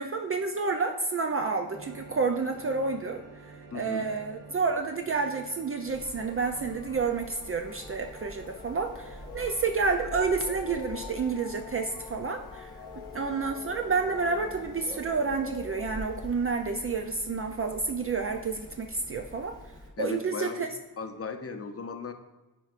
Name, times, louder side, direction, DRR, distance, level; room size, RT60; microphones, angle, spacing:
voice 1, 0.0-3.2 3.7-12.7 13.0-19.5 20.0-20.7, right 4 dB, 35° right, 5 dB, 0.4 m, -29 dB
sound 1, 1.7-21.5, right 4 dB, 60° right, 1.4 m, -53 dB
voice 2, 3.7-4.1 20.0-20.7 21.0-22.1, left 4 dB, 40° left, 7 dB, 0.6 m, -36 dB
Bird, 5.9-19.9, left 1 dB, 10° left, 1.0 m, -45 dB
sound 2, 6.0-17.8, left 7 dB, 75° left, 0.7 m, -49 dB
9.0 x 4.6 x 2.5 m, 1.1 s
wide cardioid pair, 120°, 38 cm